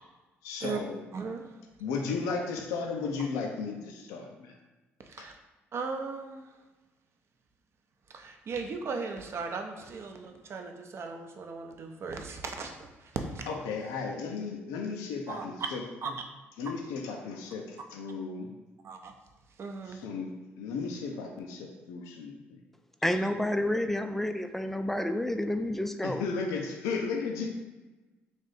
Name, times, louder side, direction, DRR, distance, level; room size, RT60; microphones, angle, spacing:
voice 1, 0.4-1.0 1.8-4.5 5.2-5.3 13.5-15.8 16.6-18.5 19.9-20.3 20.6-22.6 26.0-27.5, left 4 dB, 80° left, 2 dB, 0.5 m, -35 dB
voice 2, 1.1-1.5 5.0-5.3 5.7-6.5 8.1-13.4 15.3-15.7 16.0-16.2 18.8-19.1 19.6-20.0, right 4 dB, 50° right, 4 dB, 0.6 m, -37 dB
voice 3, 23.0-26.2, left 1 dB, 5° left, 8 dB, 0.4 m, -29 dB
3.4 x 2.7 x 4.0 m, 1.1 s
hypercardioid pair, 60°, 6 cm